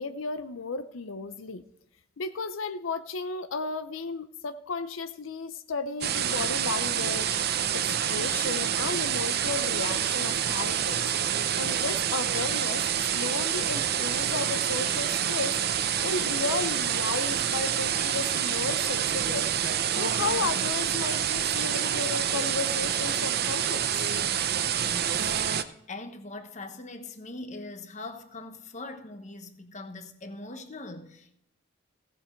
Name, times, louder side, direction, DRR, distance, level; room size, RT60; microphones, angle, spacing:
voice 1, 0.0-1.6 2.2-7.4 7.7-11.1 11.6-15.5 16.0-19.5 20.0-23.8, left 4 dB, 90° left, 0.6 m, -34 dB
sound 1, 6.0-25.6, right 9 dB, 50° right, 0.6 m, -27 dB
sound 2, 9.8-18.6, right 4 dB, 70° right, 2.5 m, -47 dB
voice 2, 24.8-31.4, left 2 dB, 40° left, 1.1 m, -42 dB
16.0 x 7.4 x 4.5 m
head